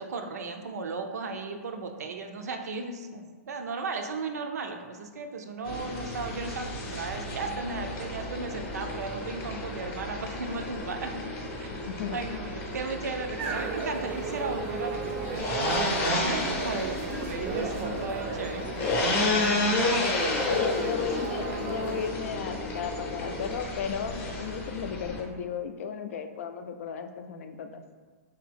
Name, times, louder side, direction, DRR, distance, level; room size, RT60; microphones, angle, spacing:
voice 1, 0.0-11.2 11.6-11.8 12.1-18.6 20.1-20.5 20.8-21.1, right 4 dB, 80° right, 5 dB, 0.5 m, -36 dB
sound 1, 5.7-25.2, left 2 dB, 25° left, 0.7 m, -32 dB
voice 2, 11.7-12.2 19.2-20.1 20.5-27.8, left 7 dB, 60° left, 7 dB, 0.4 m, -35 dB
sound 2, 13.4-22.1, right 3 dB, 25° right, 0.4 m, -35 dB
3.5 x 2.7 x 3.4 m, 1.4 s
hypercardioid pair, 145°, 9 cm